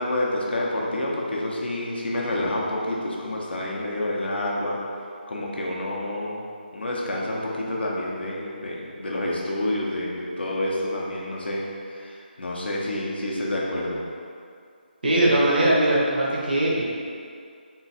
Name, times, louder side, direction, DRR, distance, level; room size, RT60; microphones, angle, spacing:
voice 1, 0.0-4.8 5.3-6.4 6.7-11.6 11.9-14.0, left 1 dB, 70° left, -3 dB, 0.9 m, -28 dB
voice 2, 15.0-16.8, right 1 dB, 55° right, -5 dB, 1.0 m, -20 dB
3.8 x 2.4 x 4.1 m, 2.3 s
figure-of-eight pair, 175°, 6 cm